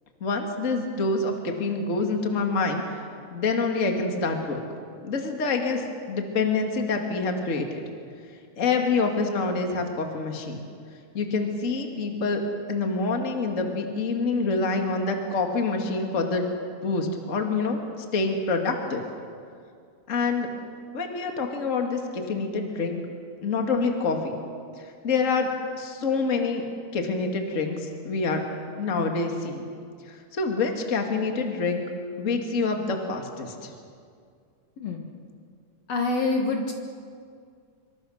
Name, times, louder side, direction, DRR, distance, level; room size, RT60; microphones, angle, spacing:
voice 1, 0.2-2.8 3.3-4.6 5.0-7.8 8.6-10.6 11.1-12.4 12.7-16.5 16.8-17.8 18.1-19.0 20.1-20.5 20.9-23.0 23.4-24.4 24.8-25.5 25.8-26.6 26.9-28.4 28.8-29.7 30.1-31.8 32.2-33.7, left 4 dB, 25° left, 3 dB, 2.2 m, -26 dB
voice 2, 34.8-35.1 35.9-36.7, left 3 dB, 55° left, 2 dB, 2.5 m, -26 dB
25.5 x 25.5 x 6.5 m, 2.2 s
omnidirectional pair, 3.7 m